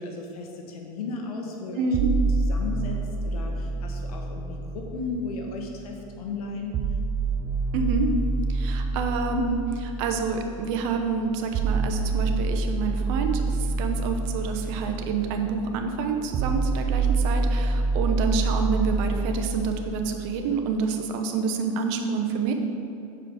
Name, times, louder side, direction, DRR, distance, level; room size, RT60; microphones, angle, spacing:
voice 1, 0.0-2.0 2.5-6.8, left 3 dB, 85° left, 1 dB, 1.3 m, -35 dB
voice 2, 1.8-2.1 7.7-8.1 8.5-22.5, right 4 dB, 65° right, 4 dB, 0.9 m, -28 dB
sound 1, 1.9-5.9 6.7-20.8, right 3 dB, 35° right, 0.4 m, -28 dB
7.9 x 4.8 x 4.9 m, 3.0 s
supercardioid pair, 115°, 18 cm